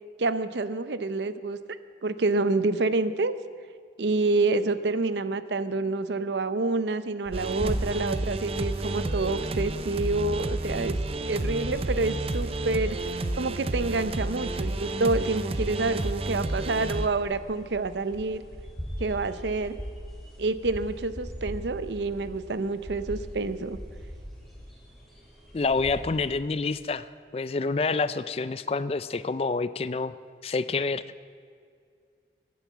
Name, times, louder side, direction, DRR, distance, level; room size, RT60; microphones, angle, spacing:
voice 1, 0.2-1.6 2.0-3.4 4.0-11.0 11.3-13.0 13.4-18.4 19.0-19.8 20.4-23.8, right 3 dB, 75° right, 13 dB, 0.7 m, -28 dB
sound 1, 7.3-26.4, equal, ahead, 3.2 m, -41 dB
sound 2, 7.3-17.1, right 2 dB, 35° right, 0.6 m, -31 dB
voice 2, 25.5-27.1 27.3-30.1 30.4-31.0, left 4 dB, 35° left, 15 dB, 0.4 m, -27 dB
15.0 x 9.4 x 7.4 m, 2.2 s
head